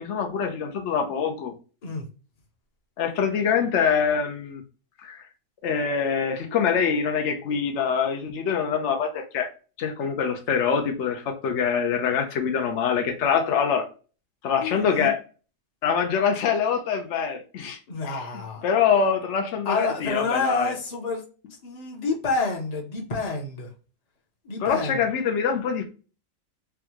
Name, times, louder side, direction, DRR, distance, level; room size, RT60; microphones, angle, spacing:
voice 1, 0.0-1.6 3.0-4.6 5.0-5.2 5.6-9.5 9.8-13.9 14.4-15.2 15.8-17.8 18.1-18.2 18.6-20.7 24.6-25.8, left 6 dB, 65° left, 1.0 m, -24 dB
voice 2, 14.6-15.1 17.9-18.7 19.6-21.2 21.6-23.7 24.4-25.0, left 3 dB, 35° left, 0.9 m, -28 dB
3.5 x 2.3 x 2.9 m
omnidirectional pair, 1.4 m